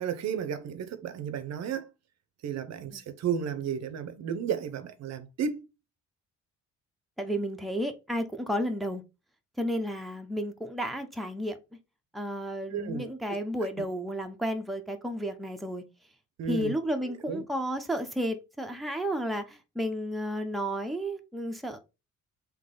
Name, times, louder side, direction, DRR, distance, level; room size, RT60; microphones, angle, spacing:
voice 1, 0.0-1.9 2.4-5.6 12.7-13.1 16.4-16.7 17.1-17.4, right 7 dB, 60° right, 0.6 m, -33 dB
voice 2, 7.2-9.0 9.6-11.6 12.1-15.8 16.5-21.8, equal, ahead, 0.7 m, -32 dB
3.7 x 2.9 x 3.7 m
cardioid pair, 90°, 30 cm